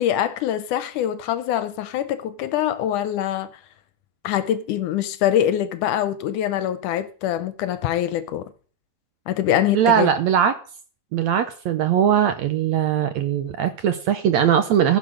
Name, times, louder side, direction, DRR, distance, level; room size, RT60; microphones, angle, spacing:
voice 1, 0.0-3.5 4.2-8.5 9.3-10.1, left 11 dB, 75° left, 2.0 m, -24 dB
voice 2, 9.7-10.5 11.1-15.0, right 9 dB, 75° right, 1.7 m, -20 dB
15.0 x 6.2 x 6.4 m
omnidirectional pair, 4.0 m